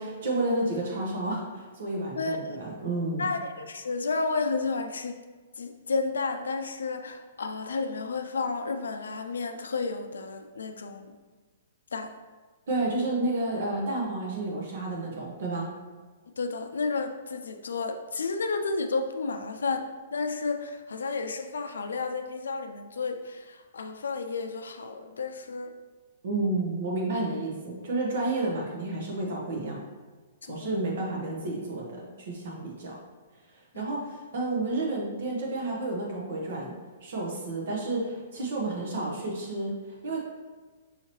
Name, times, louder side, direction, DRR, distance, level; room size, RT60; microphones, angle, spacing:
voice 1, 0.0-3.3 12.7-15.7 26.2-29.8 30.5-33.0 33.5-36.7 37.0-40.2, right 2 dB, 65° right, -2 dB, 0.9 m, -31 dB
voice 2, 2.2-2.6 3.2-5.2 5.6-11.1 11.9-12.1 16.4-25.7 30.4-30.7 33.7-33.8, left 4 dB, 90° left, 6 dB, 0.4 m, -32 dB
5.5 x 2.8 x 3.0 m, 1.4 s
hypercardioid pair, 140°, 0 cm